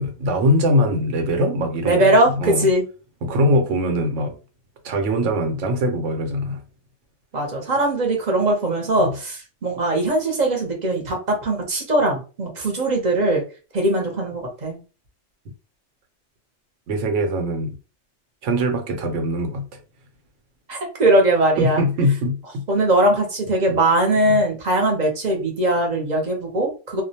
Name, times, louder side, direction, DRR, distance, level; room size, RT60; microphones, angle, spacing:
voice 1, 0.0-2.7 3.2-4.3 4.8-6.6 9.0-9.1 16.9-17.7 18.4-19.7 21.6-22.6 23.7-23.8 24.2-24.4, equal, 90° right, 1.0 m, -22 dB
voice 2, 1.8-2.8 7.3-13.4 13.7-14.8 20.7-21.8 22.7-27.0, right 1 dB, 45° right, 0.8 m, -20 dB
2.4 x 2.1 x 2.7 m
omnidirectional pair, 1.2 m